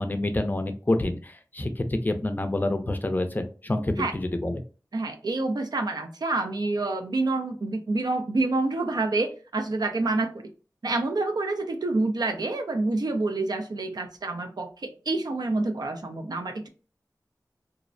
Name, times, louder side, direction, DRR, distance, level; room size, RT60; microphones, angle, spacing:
voice 1, 0.0-4.6, left 1 dB, 25° left, 7 dB, 0.4 m, -27 dB
voice 2, 4.9-10.3 10.8-16.7, right 2 dB, 70° right, 5 dB, 0.4 m, -27 dB
2.5 x 2.0 x 2.5 m, 0.36 s
wide cardioid pair, 40°, 7 cm